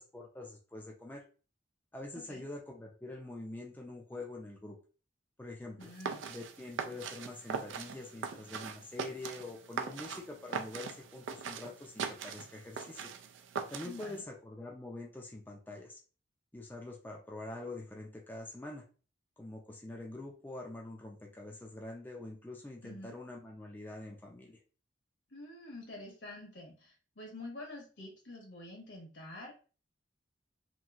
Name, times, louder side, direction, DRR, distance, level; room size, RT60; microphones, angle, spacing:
voice 1, 0.1-1.2 1.9-4.8 5.4-5.9 6.3-13.1 13.7-16.0 16.5-18.8 19.4-24.6, left 2 dB, 10° left, -1 dB, 0.4 m, -45 dB
voice 2, 5.8-6.3 13.8-14.2 22.8-23.1 25.3-29.5, left 2 dB, 75° left, 0 dB, 1.2 m, -47 dB
sound 1, 5.8-14.2, right 6 dB, 85° right, 0.4 m, -41 dB
3.0 x 2.6 x 2.4 m, 0.37 s
head